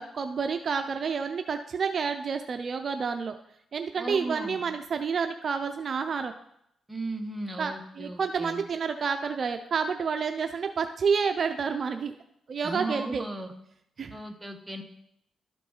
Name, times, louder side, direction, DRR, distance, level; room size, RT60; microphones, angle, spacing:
voice 1, 0.0-3.3 3.7-6.3 7.6-12.1 12.5-13.2 14.0-14.2, right 5 dB, 55° right, 7 dB, 0.5 m, -29 dB
voice 2, 4.0-4.6 6.9-8.6 12.6-13.5 14.1-14.8, right 2 dB, 10° right, 4 dB, 1.2 m, -36 dB
12.5 x 4.5 x 4.0 m, 0.76 s
cardioid pair, 75°, 0 cm